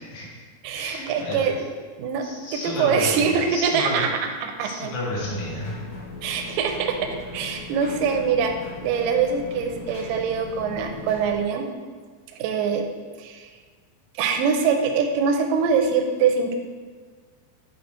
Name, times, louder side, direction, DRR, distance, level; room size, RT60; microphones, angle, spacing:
voice 1, 0.1-0.4 0.8-1.5 2.2-4.0 4.6-5.7, left 1 dB, 65° left, -6 dB, 3.3 m, -31 dB
voice 2, 0.6-1.7 2.0-4.9 6.2-8.5 8.8-11.7 12.3-12.9 13.2-13.5 14.1-16.5, right 6 dB, 80° right, 4 dB, 2.1 m, -24 dB
sound 1, 5.2-11.4, left 4 dB, 80° left, 3.2 m, -39 dB
8.5 x 4.2 x 4.4 m, 1.6 s
omnidirectional pair, 4.4 m